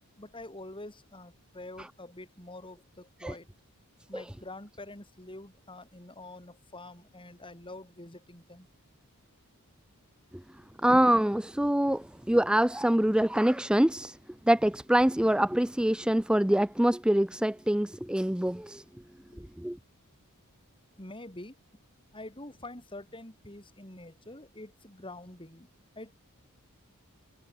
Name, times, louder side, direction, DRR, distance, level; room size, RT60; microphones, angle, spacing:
voice 1, 0.2-3.5 4.1-8.7 19.3-19.4 21.0-21.5 22.1-25.7 25.9-26.1, left 2 dB, 25° left, 4.8 m, -46 dB
voice 2, 10.8-14.2 14.5-18.8 19.4-19.8, right 1 dB, 5° right, 0.4 m, -25 dB
head